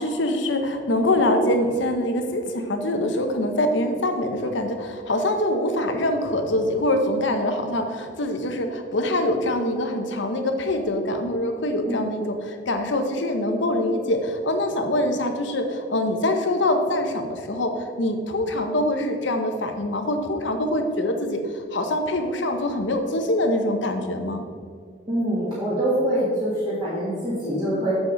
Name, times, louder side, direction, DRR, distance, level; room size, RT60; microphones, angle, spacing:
voice 1, 0.0-24.4, left 1 dB, 70° left, 5 dB, 0.9 m, -24 dB
voice 2, 25.1-27.9, right 1 dB, 25° right, -10 dB, 1.8 m, -24 dB
7.1 x 6.7 x 3.9 m, 2.1 s
head